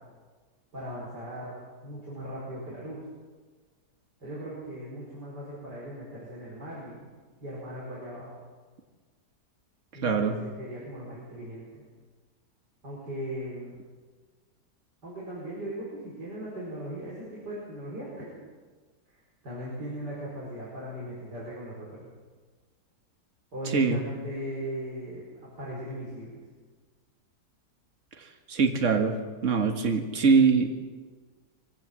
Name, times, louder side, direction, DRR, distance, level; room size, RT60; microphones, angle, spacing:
voice 1, 0.7-3.0 4.2-7.1 7.4-8.3 9.9-11.8 12.8-13.8 15.0-18.4 19.1-22.1 23.5-26.4, equal, 80° right, -5 dB, 5.7 m, -38 dB
voice 2, 10.0-10.3 23.7-24.0 28.5-29.2 29.4-30.7, right 5 dB, 45° right, 5 dB, 2.0 m, -22 dB
23.0 x 17.0 x 7.5 m, 1.4 s
omnidirectional pair, 1.8 m